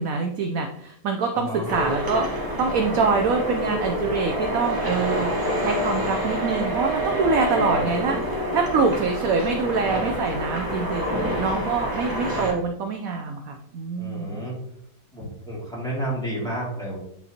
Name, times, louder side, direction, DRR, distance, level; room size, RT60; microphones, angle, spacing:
voice 1, 0.0-2.2 2.6-5.3 5.6-14.4, right 4 dB, 65° right, 3 dB, 0.9 m, -25 dB
voice 2, 1.3-1.7 7.5-7.9 14.0-14.5 15.1-17.0, right 1 dB, ahead, -6 dB, 2.3 m, -31 dB
sound 1, 1.7-12.5, equal, 15° right, 0.8 m, -27 dB
9.0 x 3.9 x 2.8 m, 0.71 s
omnidirectional pair, 1.8 m